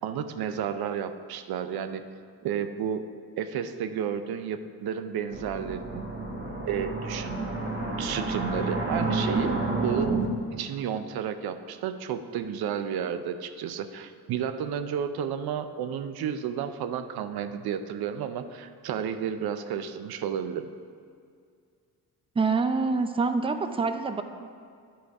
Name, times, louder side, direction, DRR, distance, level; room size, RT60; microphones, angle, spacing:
voice 1, 0.0-2.0 2.4-3.0 3.4-6.1 6.7-7.4 8.0-10.2 10.5-20.7, right 8 dB, 70° right, 10 dB, 0.6 m, -32 dB
sound 1, 5.3-10.3, right 3 dB, 30° right, 1.4 m, -30 dB
voice 2, 22.4-24.2, right 4 dB, 15° right, 8 dB, 0.5 m, -26 dB
10.0 x 5.1 x 4.7 m, 2.2 s
cardioid pair, 90°, 39 cm